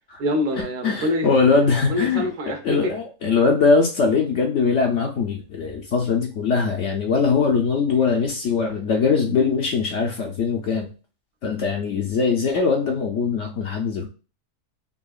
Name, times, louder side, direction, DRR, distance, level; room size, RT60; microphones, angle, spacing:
voice 1, 0.2-1.3 1.9-2.9, left 1 dB, 75° right, 3 dB, 1.3 m, -25 dB
voice 2, 0.8-2.2 2.6-10.9 11.4-14.0, left 5 dB, 65° left, 2 dB, 0.8 m, -21 dB
5.6 x 2.3 x 2.3 m, 0.34 s
omnidirectional pair, 1.7 m